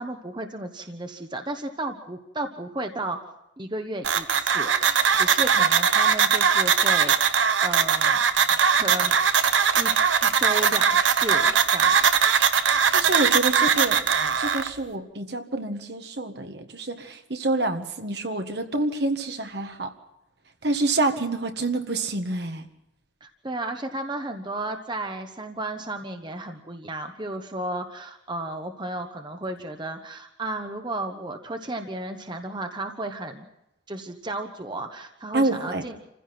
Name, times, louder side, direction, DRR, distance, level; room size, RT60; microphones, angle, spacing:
voice 1, 0.0-3.2 3.6-8.2 8.8-9.2 9.7-10.0 10.2-12.1 23.2-33.5 33.9-36.0, right 2 dB, 25° right, 5 dB, 1.1 m, -33 dB
sound 1, 4.0-14.7, right 6 dB, 85° right, 1.1 m, -20 dB
voice 2, 12.9-14.0 14.4-19.9 20.6-22.7 35.3-35.8, right 2 dB, 60° right, 6 dB, 1.7 m, -27 dB
27.5 x 15.5 x 6.0 m, 0.88 s
head